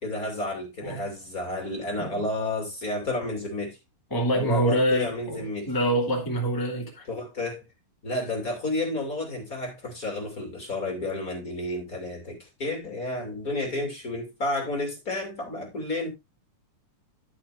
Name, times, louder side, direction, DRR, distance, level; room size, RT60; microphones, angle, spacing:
voice 1, 0.0-3.8 4.3-5.7 7.1-7.6 8.0-16.1, left 2 dB, 25° left, 2.8 m, -31 dB
voice 2, 4.1-7.0, right 1 dB, 5° left, 2.0 m, -26 dB
11.5 x 8.5 x 2.6 m
omnidirectional pair, 3.9 m